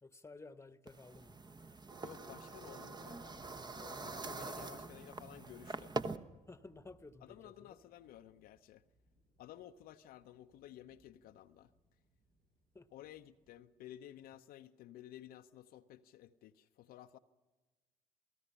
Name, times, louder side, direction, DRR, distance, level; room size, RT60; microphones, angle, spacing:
voice 1, 0.0-1.4 3.7-4.8 6.3-7.8 12.7-12.9 14.3-14.4, left 3 dB, 15° left, 1.2 m, -55 dB
sound 1, 0.9-6.2, right 3 dB, 25° right, 1.1 m, -44 dB
voice 2, 2.0-3.4 4.0-6.0 7.2-8.8 9.4-11.7 12.9-17.2, left 12 dB, 60° left, 0.7 m, -54 dB
sound 2, 3.0-13.6, right 1 dB, 65° right, 6.3 m, -69 dB
27.5 x 18.0 x 5.6 m
hypercardioid pair, 50°, 17 cm